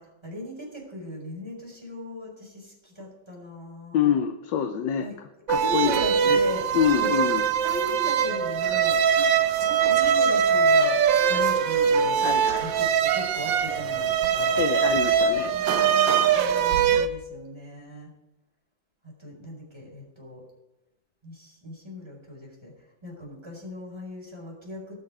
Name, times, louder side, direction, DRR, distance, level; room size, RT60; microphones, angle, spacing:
voice 1, 0.0-4.1 5.0-5.2 5.5-6.7 7.0-9.0 9.5-11.0 11.3-12.2 12.6-14.6 15.4-18.1 19.0-20.4 21.2-22.7 23.0-24.9, equal, 10° right, -2 dB, 4.7 m, -38 dB
voice 2, 3.9-5.1 5.5-5.9 6.2-6.4 6.7-7.4 12.2-12.7 14.6-16.0, left 8 dB, 65° left, 7 dB, 1.4 m, -26 dB
sound 1, 5.5-17.1, right 7 dB, 70° right, 1.4 m, -22 dB
19.5 x 6.9 x 4.9 m, 0.96 s
omnidirectional pair, 2.2 m